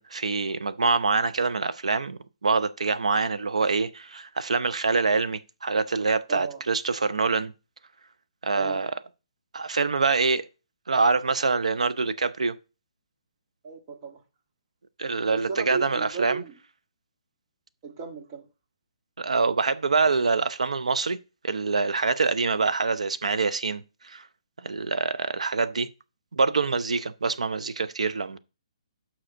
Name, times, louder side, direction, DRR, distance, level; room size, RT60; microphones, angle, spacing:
voice 1, 0.0-7.5 8.4-8.9 9.5-10.4 10.9-12.6 15.0-16.4 19.2-21.2 21.4-24.2 24.6-25.9 26.3-28.4, right 4 dB, 80° right, 0.7 m, -25 dB
voice 2, 6.3-6.6 8.5-8.9 13.6-14.2 15.3-16.5 17.8-18.5, right 5 dB, 35° right, 1.8 m, -35 dB
5.7 x 5.0 x 6.3 m
figure-of-eight pair, 140°, 4 cm